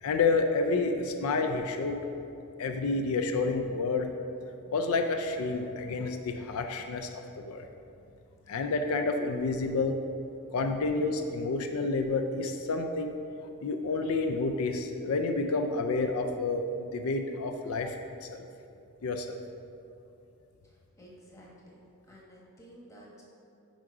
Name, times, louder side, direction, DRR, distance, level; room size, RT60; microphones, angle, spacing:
voice 1, 0.0-2.0 2.6-4.1 4.7-7.7 8.5-10.0 10.5-13.1 13.6-18.0 18.2-18.3 19.0-19.4, left 3 dB, 75° left, 5 dB, 0.4 m, -29 dB
voice 2, 21.0-21.8 22.1-23.2, equal, 15° left, -4 dB, 1.0 m, -52 dB
6.3 x 4.9 x 4.7 m, 2.7 s
head